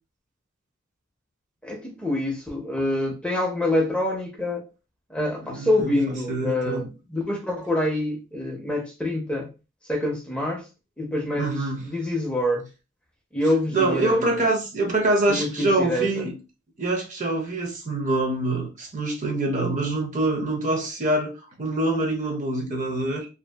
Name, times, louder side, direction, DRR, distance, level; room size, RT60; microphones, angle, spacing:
voice 1, 1.6-4.6 5.1-9.5 9.9-10.7 11.0-11.5 11.8-12.7 13.3-14.4 15.3-16.3, left 1 dB, 5° left, 0.5 m, -26 dB
voice 2, 5.4-5.9 6.3-6.9 11.4-11.8 13.7-16.3 16.8-23.3, right 2 dB, 40° right, 0.6 m, -25 dB
2.6 x 2.3 x 2.2 m
head